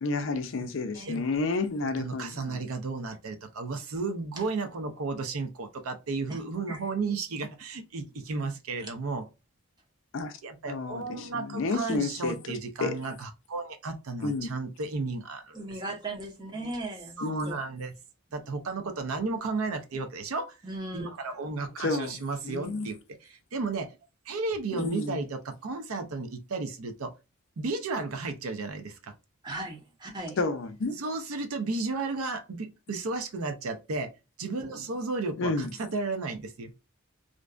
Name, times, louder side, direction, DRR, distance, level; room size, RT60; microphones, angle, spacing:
voice 1, 0.0-2.7 10.1-10.3 10.7-13.0 14.2-14.5 17.2-17.5 21.8-22.9 24.7-25.2 30.4-31.0 35.4-35.7, left 3 dB, 65° left, 0.4 m, -31 dB
voice 2, 2.0-9.2 10.4-15.6 17.2-17.9 18.3-20.6 20.9-23.0 23.2-23.9 24.3-27.1 27.6-29.1 31.0-34.1 34.4-36.7, right 3 dB, 90° right, 0.6 m, -33 dB
voice 3, 15.5-17.6 19.5-19.6 20.6-21.1 29.4-30.4, right 2 dB, 20° right, 0.7 m, -38 dB
2.5 x 2.2 x 2.3 m
head